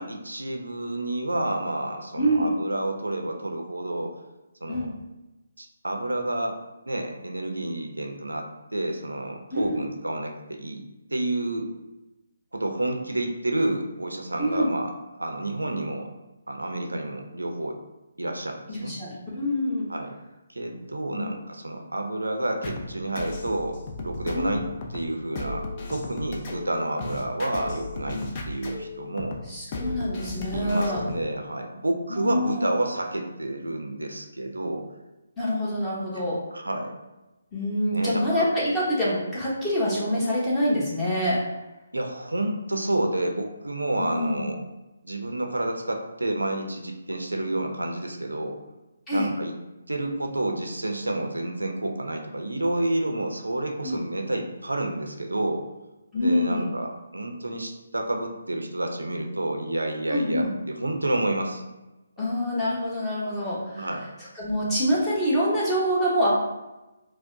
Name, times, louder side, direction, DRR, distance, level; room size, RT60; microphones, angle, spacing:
voice 1, 0.0-4.2 4.6-4.9 5.6-6.6 6.9-10.8 11.1-11.7 12.5-14.9 15.2-16.1 16.5-17.8 18.2-19.0 19.9-20.2 20.5-24.6 24.9-28.2 28.5-29.4 30.5-34.9 36.1-36.2 36.5-36.9 37.9-38.5 41.9-44.6 45.0-48.6 49.1-49.5 49.9-55.6 56.1-61.6 63.7-64.1, right 1 dB, 85° right, 4 dB, 0.5 m, -29 dB
voice 2, 2.2-2.5 4.7-4.9 9.5-9.8 14.4-14.7 18.7-19.9 21.1-21.4 24.3-24.6 28.1-28.2 29.5-31.0 32.1-32.7 35.4-36.4 37.5-41.4 44.0-44.5 49.1-49.3 53.8-54.0 56.1-56.7 60.1-60.5 62.2-63.9 64.3-66.3, equal, 10° left, -9 dB, 1.0 m, -26 dB
sound 1, 22.6-31.3, left 2 dB, 35° left, 0.5 m, -35 dB
4.5 x 2.0 x 2.6 m, 1.0 s
figure-of-eight pair, 145°, 0 cm